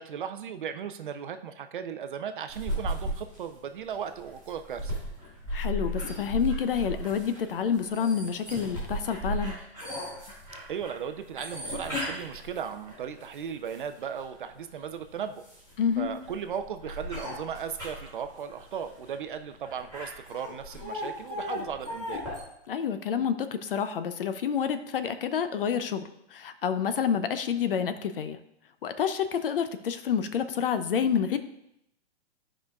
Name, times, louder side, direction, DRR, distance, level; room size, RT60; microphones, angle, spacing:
voice 1, 0.0-4.9 10.7-15.5 16.0-22.2, right 7 dB, 50° right, 8 dB, 0.5 m, -36 dB
sound 1, 2.5-14.2 14.8-22.4, equal, 10° left, 2.8 m, -36 dB
voice 2, 5.5-9.6 15.8-16.1 22.7-26.0 26.3-28.4 28.8-31.4, left 7 dB, 55° left, 10 dB, 0.6 m, -28 dB
14.0 x 4.9 x 2.3 m, 0.78 s
hypercardioid pair, 175°, 33 cm